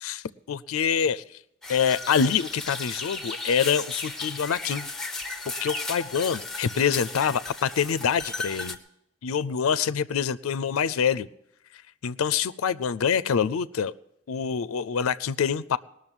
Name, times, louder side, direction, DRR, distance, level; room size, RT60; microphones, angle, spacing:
voice 1, 0.0-1.2 1.7-5.2 5.5-8.8 9.2-11.3 12.0-13.9 14.3-15.8, left 7 dB, 90° left, 17 dB, 0.4 m, -26 dB
sound 1, 1.6-8.8, left 2 dB, ahead, 0.8 m, -35 dB
19.0 x 6.4 x 8.9 m, 0.80 s
head